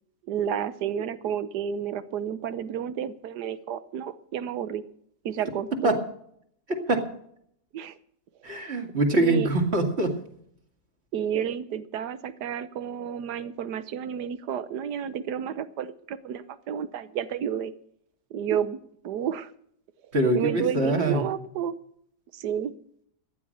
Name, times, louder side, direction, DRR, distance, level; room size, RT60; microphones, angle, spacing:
voice 1, 0.3-4.8 5.2-6.0 7.7-8.0 9.1-9.5 11.1-17.7 18.3-19.5 20.3-21.7 22.3-22.7, right 9 dB, 85° right, 13 dB, 1.5 m, -31 dB
voice 2, 6.7-7.0 8.4-10.2 20.1-21.2, right 2 dB, 40° right, 3 dB, 2.6 m, -24 dB
14.5 x 10.5 x 6.5 m, 0.67 s
omnidirectional pair, 1.7 m